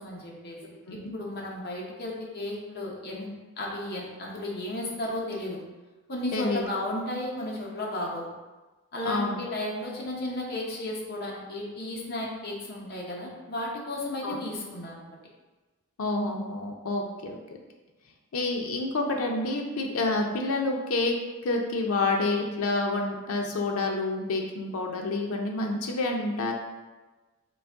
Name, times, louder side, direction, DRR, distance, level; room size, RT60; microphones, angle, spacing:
voice 1, 0.0-3.3 3.6-5.6 6.1-8.3 8.9-15.1, left 1 dB, 50° left, -3 dB, 0.8 m, -34 dB
voice 2, 6.3-6.6 9.0-9.4 14.2-14.4 16.0-17.4 18.3-21.1 21.4-26.5, left 2 dB, 85° left, 1 dB, 0.5 m, -28 dB
3.9 x 2.9 x 3.4 m, 1.2 s
head